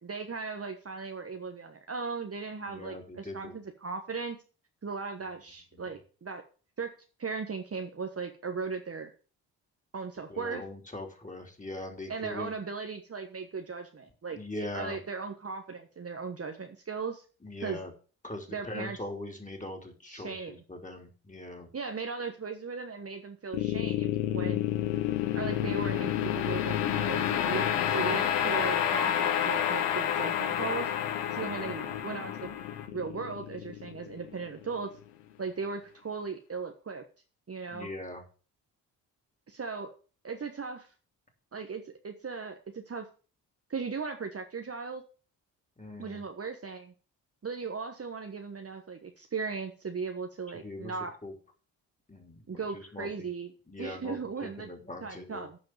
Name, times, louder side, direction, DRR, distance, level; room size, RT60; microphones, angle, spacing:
voice 1, 0.0-4.4 4.8-6.4 6.8-6.9 7.2-9.1 9.9-10.6 12.1-17.2 17.6-17.8 18.5-19.0 20.1-20.6 21.7-24.6 25.3-30.9 31.3-32.5 32.9-34.9 35.4-37.0 37.5-37.9 39.5-39.9 40.2-40.9 41.5-43.1 43.7-45.0 46.0-46.9 47.4-51.1 52.5-53.5 53.8-54.7 55.0-55.6, right 5 dB, 30° right, 5 dB, 1.2 m, -37 dB
voice 2, 2.7-3.6 5.7-5.9 10.3-12.6 14.3-15.0 17.4-17.9 18.2-21.7 24.3-24.8 31.3-31.7 37.7-38.2 45.8-46.2 50.5-51.3 52.1-53.3 53.7-55.5, left 1 dB, 15° left, 3 dB, 3.4 m, -41 dB
sound 1, 23.5-34.7, left 10 dB, 90° left, 0.9 m, -29 dB
9.3 x 5.1 x 7.3 m, 0.38 s
hypercardioid pair, 45°, 47 cm